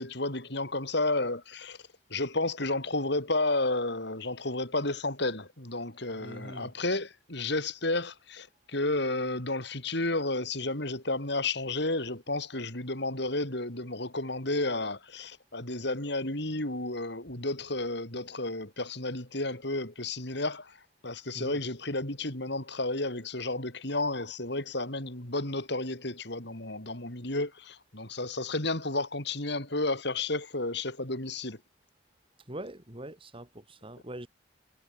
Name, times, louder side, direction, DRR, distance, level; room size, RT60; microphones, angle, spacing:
voice 1, 0.0-1.8 2.1-20.8 21.0-31.6, left 2 dB, 65° left, 6.2 m, -32 dB
voice 2, 6.1-6.7 21.3-21.6 32.5-34.3, right 1 dB, 30° right, 3.5 m, -42 dB
head